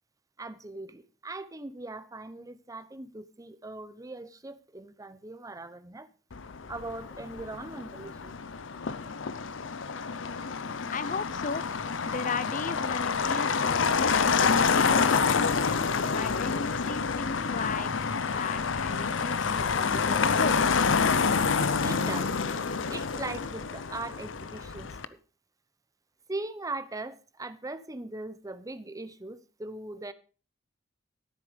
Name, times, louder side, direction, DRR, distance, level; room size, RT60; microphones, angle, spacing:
voice 1, 0.4-6.1 6.7-8.4 21.7-22.3 22.9-25.2 26.3-30.1, right 2 dB, 20° right, 0.8 m, -40 dB
Motor vehicle (road), 6.3-25.1, left 5 dB, 75° left, 0.7 m, -28 dB
voice 2, 10.9-11.7 12.1-15.6 16.1-17.9 18.3-20.7, left 4 dB, 40° left, 0.7 m, -36 dB
13.5 x 7.7 x 5.2 m
head